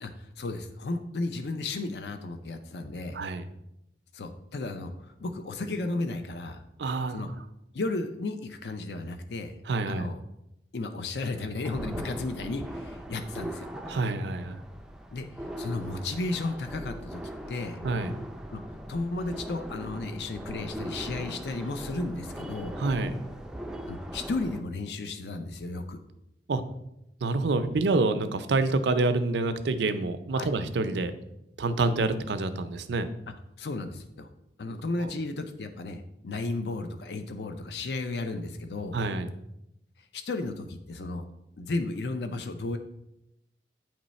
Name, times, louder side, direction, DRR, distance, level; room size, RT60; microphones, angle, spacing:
voice 1, 0.0-3.2 4.1-6.6 7.1-7.3 7.7-9.5 9.9-10.2 10.7-13.7 15.1-15.2 15.6-17.2 17.5-17.8 18.5-18.6 18.9-22.7 23.9-26.0 30.3-30.5 33.6-34.3 34.6-39.0 40.1-41.3 41.6-42.8, left 2 dB, 65° left, 7 dB, 0.5 m, -34 dB
voice 2, 3.1-3.5 6.8-7.2 9.7-10.1 13.9-14.6 17.8-18.1 22.8-23.1 26.5-26.6 27.2-31.1 31.6-33.1 35.0-35.1 38.9-39.3, right 3 dB, 75° right, 10 dB, 0.5 m, -27 dB
sound 1, 11.6-24.6, equal, 5° right, 0.3 m, -40 dB
8.8 x 3.1 x 4.1 m, 0.85 s
head